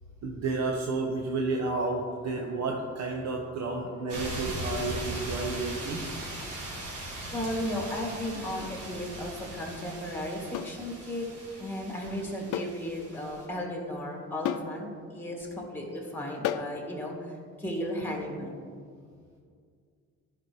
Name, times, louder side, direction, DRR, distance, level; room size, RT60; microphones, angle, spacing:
voice 1, 0.2-6.0, right 3 dB, 60° right, 0 dB, 0.9 m, -31 dB
sound 1, 4.1-13.5, right 1 dB, 80° right, 2.1 m, -39 dB
voice 2, 7.3-11.3 11.6-18.7, left 1 dB, 5° left, -1 dB, 2.3 m, -35 dB
sound 2, 8.6-8.8 10.5-10.8 12.5-12.8 13.1-13.2 14.4-14.8 16.4-16.8, left 10 dB, 90° left, 0.5 m, -32 dB
12.0 x 5.9 x 3.1 m, 2.2 s
cardioid pair, 90°, 30 cm